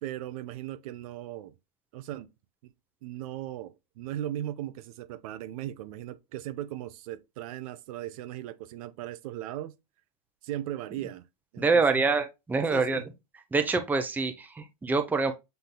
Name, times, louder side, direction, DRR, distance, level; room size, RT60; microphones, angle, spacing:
voice 1, 0.0-1.5 1.9-2.3 2.6-2.7 3.0-9.7 10.4-11.3 11.5-12.0 12.7-13.1, right 13 dB, 60° right, 0.6 m, -38 dB
voice 2, 11.6-13.0 13.5-15.3, right 4 dB, 10° right, 0.7 m, -25 dB
7.7 x 2.6 x 2.2 m
hypercardioid pair, 120°, 21 cm